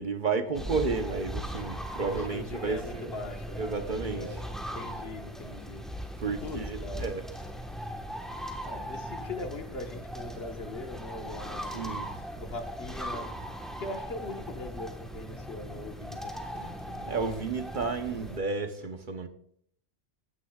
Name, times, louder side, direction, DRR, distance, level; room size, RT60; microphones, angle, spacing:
voice 1, 0.0-3.1 3.6-4.3 6.2-7.2 11.7-12.1 17.1-19.3, right 4 dB, 50° right, 0.9 m, -32 dB
sound 1, 0.5-18.4, equal, ahead, 1.1 m, -39 dB
voice 2, 2.1-3.6 4.1-4.4 4.7-5.8 6.3-7.1 8.6-11.8 12.4-13.3 13.8-17.6, left 2 dB, 65° left, 1.4 m, -41 dB
15.5 x 9.8 x 2.3 m
omnidirectional pair, 1.1 m